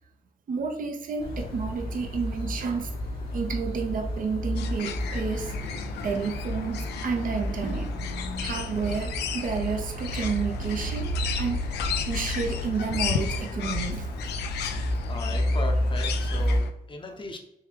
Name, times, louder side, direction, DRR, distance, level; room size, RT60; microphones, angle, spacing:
voice 1, 0.5-2.9 3.3-8.0 8.3-14.1, right 5 dB, 50° right, 3 dB, 0.6 m, -31 dB
sound 1, 1.2-16.6, equal, 60° left, 1.0 m, -31 dB
sound 2, 4.6-16.7, left 8 dB, 75° left, 0.4 m, -35 dB
voice 2, 15.0-17.4, left 2 dB, 30° left, 3 dB, 0.8 m, -37 dB
3.7 x 3.2 x 3.1 m, 0.86 s
supercardioid pair, 50°, 17 cm